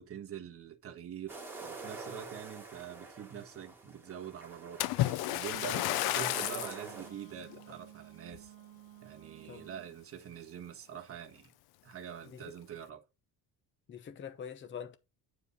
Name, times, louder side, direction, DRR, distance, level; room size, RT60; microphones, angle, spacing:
voice 1, 0.0-4.8 5.3-8.5 9.0-11.5 11.8-13.0, right 9 dB, 35° right, 1.3 m, -45 dB
sound 1, 1.3-7.1, right 3 dB, 5° right, 2.3 m, -46 dB
Splash splatter, 4.8-6.8 7.5-7.7 8.3-8.4, left 16 dB, 65° left, 0.5 m, -32 dB
Wind instrument woodwind instrument, 5.5-9.9, right 17 dB, 85° right, 1.3 m, -54 dB
voice 2, 13.9-15.0, left 8 dB, 30° left, 0.8 m, -44 dB
9.7 x 4.8 x 4.0 m
cardioid pair, 170°, 41 cm